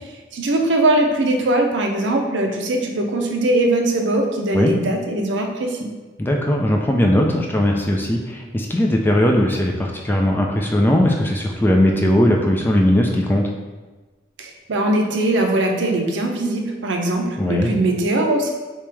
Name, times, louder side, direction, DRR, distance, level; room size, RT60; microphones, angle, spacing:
voice 1, 0.3-5.9 14.4-18.5, right 1 dB, 90° right, 3 dB, 0.5 m, -20 dB
voice 2, 6.2-13.5 17.4-17.7, left 1 dB, 10° left, 1 dB, 0.3 m, -18 dB
3.1 x 2.9 x 3.4 m, 1.3 s
head